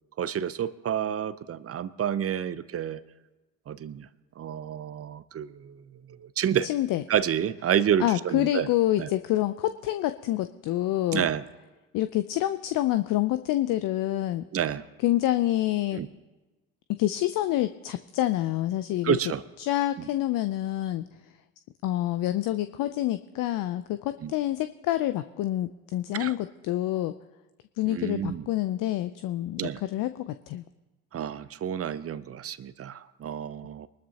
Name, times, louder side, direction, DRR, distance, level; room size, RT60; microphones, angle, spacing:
voice 1, 0.2-3.0 3.7-4.1 4.4-5.7 6.4-6.7 7.1-8.7 9.0-9.1 11.1-11.4 14.5-14.8 15.9-16.1 19.0-19.4 24.2-24.3 26.1-26.3 27.9-28.4 29.6-29.8 31.1-33.9, right 9 dB, 35° right, 15 dB, 0.8 m, -29 dB
voice 2, 6.6-7.0 8.0-11.3 11.9-14.5 15.0-16.0 17.0-19.2 19.6-21.1 21.8-27.1 27.8-30.6, left 14 dB, 50° left, 11 dB, 0.6 m, -27 dB
23.0 x 12.5 x 2.9 m, 1.1 s
hypercardioid pair, 60°, 41 cm